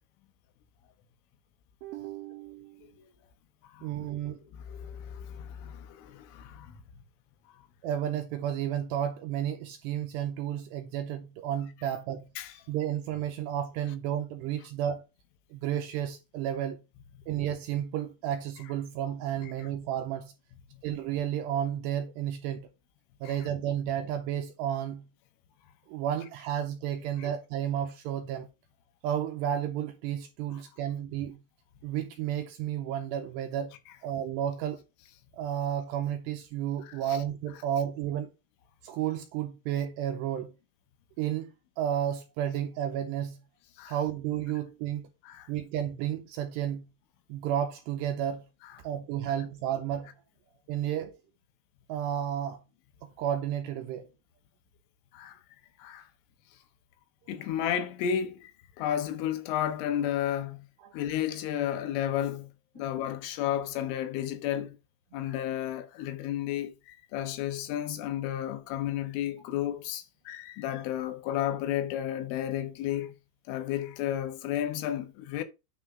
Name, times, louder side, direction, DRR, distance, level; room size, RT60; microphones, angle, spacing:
voice 1, 1.8-2.9 3.8-4.4 7.8-12.3 12.7-15.1 15.5-16.8 17.3-20.3 20.8-22.7 23.2-25.1 25.9-28.5 29.0-31.4 31.8-33.7 34.0-34.8 35.3-38.3 38.8-40.5 41.2-41.5 41.8-43.4 43.9-45.1 45.5-46.9 47.3-48.5 48.8-50.1 50.7-51.1 51.9-52.6 53.0-54.1 60.8-60.9, right 10 dB, 80° right, 2.6 m, -32 dB
voice 2, 4.5-6.8 12.4-12.5 19.4-19.5 20.7-20.8 23.3-23.4 27.2-27.3 36.8-37.2 43.8-44.0 45.3-45.5 55.1-55.4 55.8-56.1 57.3-58.5 58.8-60.7 60.9-62.5 62.8-64.8 65.1-73.1 73.5-75.4, left 11 dB, 85° left, 3.7 m, -32 dB
9.6 x 3.8 x 5.8 m
omnidirectional pair, 5.6 m